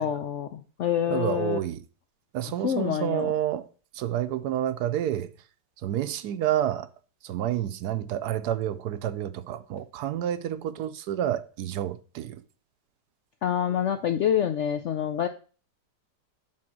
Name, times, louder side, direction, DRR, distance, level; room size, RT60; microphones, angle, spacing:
voice 1, 0.0-1.6 2.6-3.3 13.4-15.3, left 9 dB, 75° left, 0.6 m, -27 dB
voice 2, 1.1-1.8 2.3-3.6 3.9-5.3 5.8-6.9 7.2-12.4, right 11 dB, 75° right, 1.1 m, -29 dB
7.6 x 4.3 x 6.0 m
omnidirectional pair, 1.8 m